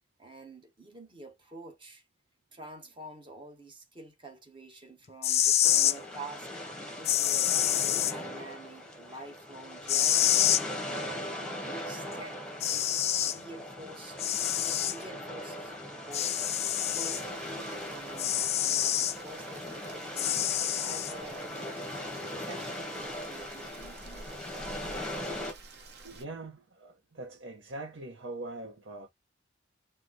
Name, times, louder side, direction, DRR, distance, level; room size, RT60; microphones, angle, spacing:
voice 1, 0.2-2.0 2.5-6.5 6.9-10.4 10.8-12.4 12.7-13.0 13.2-14.3 14.6-16.3 16.9-20.4 20.8-21.8 22.3-24.7, right 2 dB, 25° right, 1.1 m, -48 dB
sound 1, 5.1-6.0 7.1-8.1 9.9-10.6 12.1-12.2 12.6-13.4 14.2-15.0 16.1-17.2 18.2-19.2 20.2-21.1, left 11 dB, 35° left, 0.3 m, -27 dB
sound 2, 5.6-25.5, left 1 dB, 5° left, 1.0 m, -40 dB
Rain, 16.4-26.3, right 3 dB, 55° right, 0.9 m, -51 dB
voice 2, 26.0-29.1, right 2 dB, 80° right, 0.7 m, -42 dB
4.5 x 2.1 x 3.8 m
head